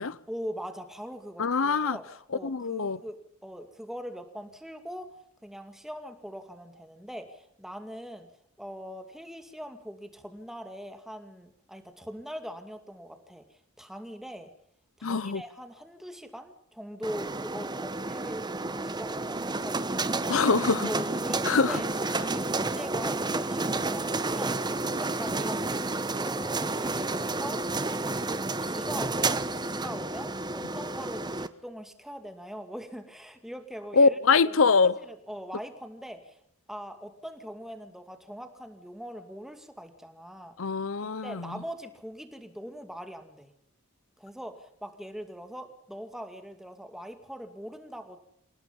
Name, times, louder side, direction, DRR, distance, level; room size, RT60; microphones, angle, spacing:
voice 1, 0.3-2.0 2.3-5.1 5.4-8.3 8.6-14.5 15.0-20.2 20.8-21.9 22.2-24.6 25.0-25.8 26.2-36.4 36.7-40.5 41.2-43.5 44.2-48.2, equal, ahead, 2.4 m, -41 dB
voice 2, 1.4-2.0 2.4-3.0 15.0-15.4 20.3-20.9 21.4-21.8 33.9-35.0 40.6-41.6, left 4 dB, 65° left, 0.8 m, -24 dB
sound 1, 17.0-31.5, right 2 dB, 20° right, 1.0 m, -30 dB
27.5 x 18.0 x 5.4 m
head